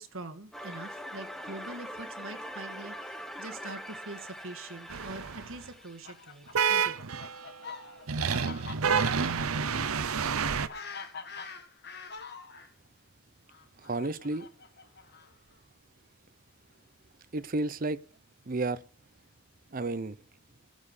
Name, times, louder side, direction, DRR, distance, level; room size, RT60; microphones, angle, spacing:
voice 1, 0.0-7.2, right 2 dB, 70° right, 1.8 m, -44 dB
sound 1, 0.5-7.4, equal, ahead, 0.9 m, -43 dB
sound 2, 4.9-5.6 6.5-7.5 8.1-10.7, right 6 dB, 90° right, 0.8 m, -29 dB
Fowl, 5.8-12.7 13.5-15.5, left 4 dB, 50° left, 1.8 m, -45 dB
voice 2, 13.8-14.5 17.3-18.0 18.5-18.8 19.7-20.2, right 2 dB, 40° right, 0.7 m, -31 dB
14.5 x 5.5 x 8.1 m
head